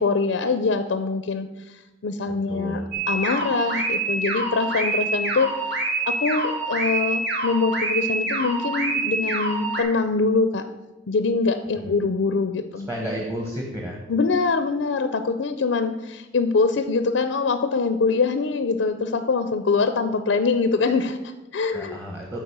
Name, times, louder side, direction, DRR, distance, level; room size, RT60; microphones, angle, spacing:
voice 1, 0.0-5.5 6.1-10.6 11.1-12.9 14.1-22.0, left 4 dB, 75° left, 9 dB, 0.5 m, -24 dB
voice 2, 2.5-2.8 11.7-11.9 12.9-14.0 21.7-22.4, equal, 15° right, -2 dB, 1.3 m, -31 dB
sound 1, 2.9-9.8, right 2 dB, 65° right, 2.0 m, -26 dB
10.0 x 4.2 x 7.2 m, 1.1 s
head